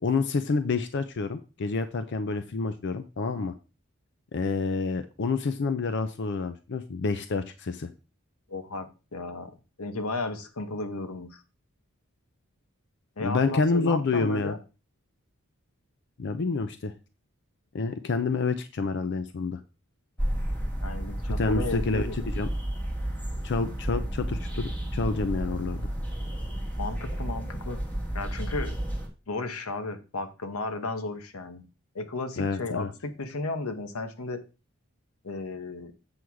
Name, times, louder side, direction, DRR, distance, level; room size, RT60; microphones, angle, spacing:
voice 1, 0.0-3.5 4.3-7.9 13.2-14.6 16.2-16.9 17.7-19.6 21.4-22.5 23.4-25.9 32.4-32.9, left 4 dB, 55° left, 10 dB, 0.5 m, -28 dB
voice 2, 8.5-11.4 13.2-14.6 20.8-22.3 26.8-27.8 28.1-28.8 29.3-31.6 31.9-34.4 35.2-35.9, left 3 dB, 90° left, 9 dB, 1.0 m, -34 dB
sound 1, 20.2-29.1, right 1 dB, 10° left, 1.8 m, -32 dB
7.8 x 3.5 x 6.2 m, 0.32 s
head